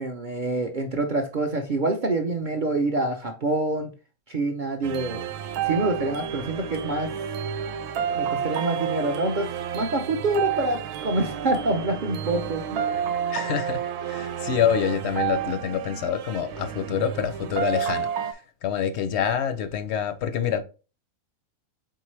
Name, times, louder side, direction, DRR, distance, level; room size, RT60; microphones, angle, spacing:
voice 1, 0.0-3.9 4.3-5.2 5.6-7.1 8.2-9.5 9.7-12.9, right 2 dB, 55° right, 0.5 m, -26 dB
sound 1, 4.8-18.3, right 8 dB, 90° right, 1.1 m, -30 dB
voice 2, 13.3-20.6, left 8 dB, 65° left, 0.7 m, -27 dB
4.6 x 3.6 x 3.1 m
omnidirectional pair, 1.6 m